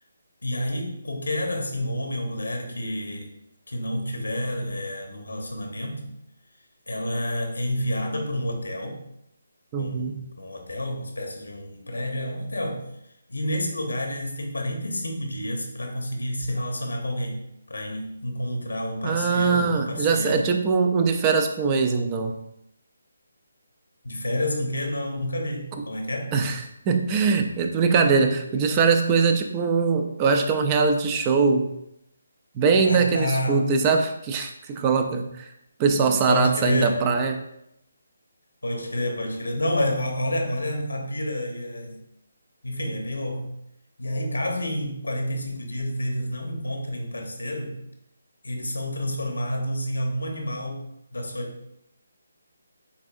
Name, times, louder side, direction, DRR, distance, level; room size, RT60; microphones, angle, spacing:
voice 1, 0.4-3.3 3.7-6.1 6.9-9.0 9.8-12.8 13.3-17.4 17.7-20.5 24.0-26.3 32.8-33.7 36.3-37.0 38.6-42.0 42.6-43.5 44.0-47.8 48.4-50.8 51.1-51.6, left 1 dB, 85° left, 3 dB, 1.0 m, -29 dB
voice 2, 9.7-10.2 19.0-22.3 26.3-31.7 32.6-35.5 35.8-37.4, right 5 dB, 25° right, 5 dB, 0.4 m, -22 dB
7.1 x 2.6 x 2.6 m, 0.80 s
figure-of-eight pair, 150°, 0 cm